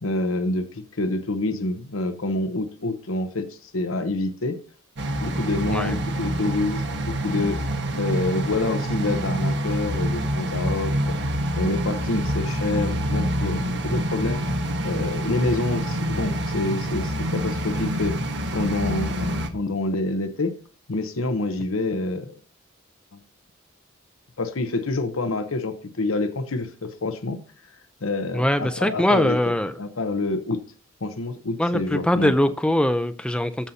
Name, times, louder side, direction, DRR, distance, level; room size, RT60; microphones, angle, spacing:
voice 1, 0.0-4.6 5.2-7.6 8.0-11.2 11.6-14.4 14.8-18.2 18.5-20.5 20.9-22.3 23.1-23.2 24.4-27.4 28.0-30.6 31.0-32.3, left 2 dB, 80° left, 8 dB, 0.8 m, -27 dB
sound 1, 5.0-19.5, right 1 dB, 60° right, 1.1 m, -26 dB
voice 2, 28.3-29.7 31.6-33.7, left 1 dB, 5° left, 10 dB, 0.4 m, -22 dB
14.5 x 5.6 x 2.8 m, 0.39 s
head